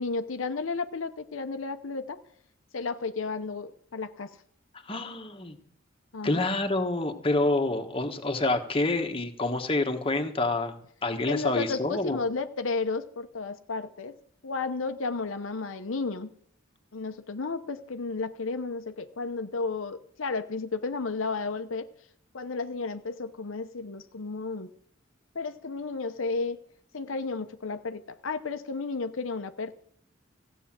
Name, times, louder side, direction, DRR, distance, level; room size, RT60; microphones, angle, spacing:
voice 1, 0.0-2.2 2.7-4.3 6.1-6.5 11.3-14.2 14.4-16.3 16.9-21.9 22.3-24.7 25.3-26.6 26.9-29.7, left 4 dB, 85° left, 8 dB, 0.8 m, -33 dB
voice 2, 4.9-5.6 6.2-10.8 11.0-12.2, left 2 dB, 30° left, 5 dB, 1.3 m, -27 dB
15.0 x 8.2 x 7.4 m, 0.63 s
head